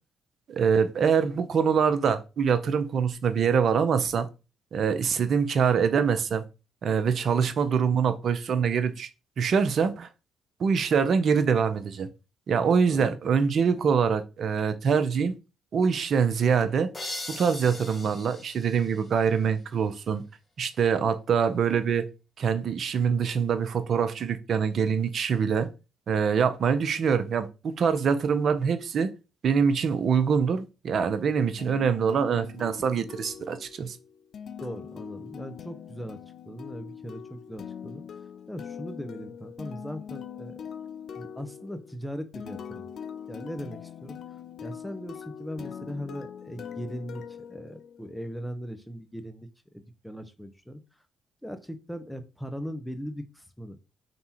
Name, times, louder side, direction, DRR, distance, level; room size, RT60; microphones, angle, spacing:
voice 1, 0.5-4.3 4.7-6.4 6.8-9.1 9.4-10.1 10.6-12.1 12.5-15.3 15.7-16.9 17.3-20.2 20.6-22.0 22.4-25.7 26.1-29.1 29.4-34.0, right 6 dB, 60° right, 0.6 m, -24 dB
sound 1, 16.9-19.7, left 2 dB, 30° left, 1.1 m, -40 dB
sound 2, 31.6-48.3, left 8 dB, 60° left, 0.4 m, -42 dB
voice 2, 34.6-38.0 38.5-40.7 41.2-42.9 43.3-44.2 44.6-47.2 47.5-50.8 51.4-53.8, equal, 5° left, 0.8 m, -39 dB
3.5 x 2.7 x 4.3 m
hypercardioid pair, 50°, 0 cm